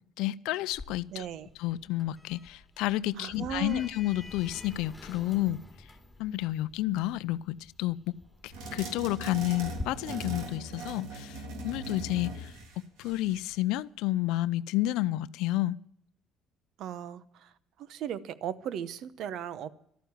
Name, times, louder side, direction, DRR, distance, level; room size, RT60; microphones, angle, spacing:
voice 1, 0.2-1.3 1.6-5.6 6.2-8.0 8.4-12.5 13.0-15.8, left 16 dB, 85° left, 0.5 m, -30 dB
Sliding door, 0.7-9.8, left 2 dB, 5° left, 2.7 m, -48 dB
voice 2, 1.1-1.5 3.2-3.8 16.8-17.5 17.9-19.7, right 9 dB, 70° right, 0.8 m, -37 dB
sound 1, 8.5-13.6, right 2 dB, 85° right, 2.9 m, -40 dB
12.5 x 9.2 x 9.8 m
cardioid pair, 100°, 0 cm